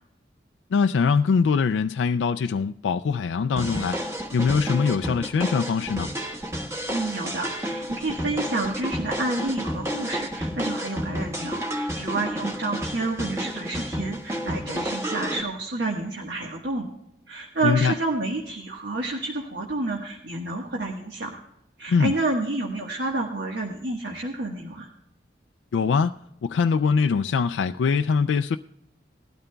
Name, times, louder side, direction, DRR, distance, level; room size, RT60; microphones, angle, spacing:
voice 1, 0.7-4.0 4.3-6.1 17.6-17.9 21.9-22.1 25.7-26.1 26.4-28.6, left 5 dB, 80° left, 0.3 m, -22 dB
sound 1, 3.6-15.4, equal, 15° right, 1.2 m, -31 dB
voice 2, 6.9-16.9 17.3-21.3 21.8-24.9, right 2 dB, 65° right, 1.4 m, -29 dB
19.0 x 12.5 x 2.3 m
head